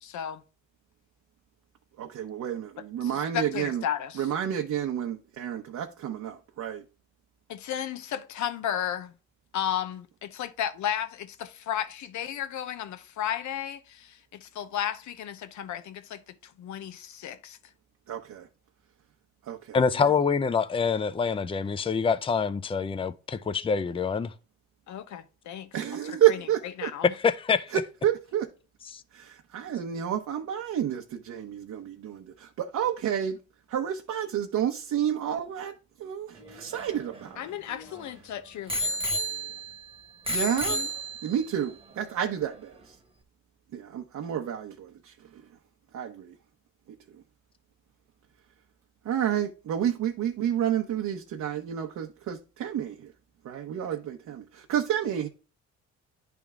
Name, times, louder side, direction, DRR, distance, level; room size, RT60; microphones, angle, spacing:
voice 1, 0.0-0.4 3.0-4.3 7.5-9.1 9.5-17.6 24.9-27.1 37.4-39.0 40.4-40.9, left 10 dB, 70° left, 0.8 m, -34 dB
voice 2, 2.0-3.8 4.2-6.8 18.1-18.4 19.5-19.6 25.7-26.9 27.7-28.5 29.1-33.4 33.7-35.7 36.0-37.4 40.3-40.8 41.2-42.7 43.7-44.9 45.9-46.3 49.1-52.9 53.4-55.3, right 10 dB, 70° right, 0.9 m, -30 dB
voice 3, 19.7-24.3 27.1-27.8 28.8-29.0, left 5 dB, 20° left, 0.5 m, -26 dB
Bicycle bell, 36.4-38.0 38.7-39.8 40.3-41.5 42.2-42.3, equal, 20° right, 1.2 m, -32 dB
10.5 x 3.5 x 3.6 m
cardioid pair, 90°, 30 cm